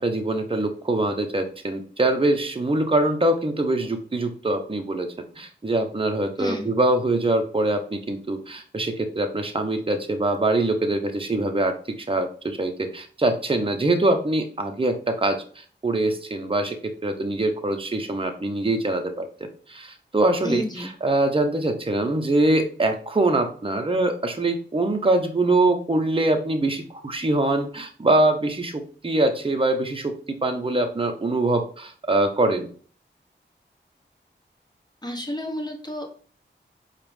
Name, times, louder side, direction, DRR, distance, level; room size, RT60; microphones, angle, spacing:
voice 1, 0.0-5.1 5.4-19.2 19.7-30.1 30.4-32.7, right 2 dB, 25° right, 5 dB, 0.8 m, -23 dB
voice 2, 6.4-6.7 20.4-20.9 35.0-36.1, left 1 dB, 20° left, 2 dB, 1.3 m, -30 dB
4.6 x 2.5 x 3.4 m, 0.43 s
cardioid pair, 45°, 20 cm